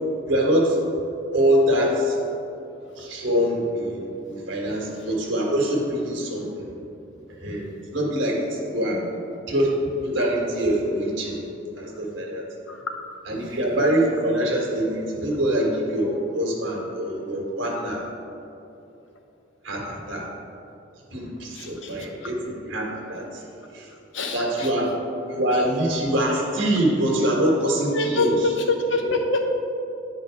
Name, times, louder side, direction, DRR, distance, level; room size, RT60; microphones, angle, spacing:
voice 1, 0.3-0.8 1.3-2.2 3.0-6.7 7.4-7.6 7.9-9.0 9.5-11.4 11.8-12.5 13.3-18.1 19.6-20.3 21.1-23.4 23.7-23.9 24.3-24.9 25.3-28.5 28.9-29.1, equal, 85° right, -2 dB, 1.5 m, -24 dB
voice 2, 21.5-21.9 24.1-24.7 27.9-29.4, left 2 dB, 75° left, 2 dB, 0.9 m, -25 dB
9.6 x 4.0 x 4.7 m, 2.8 s
head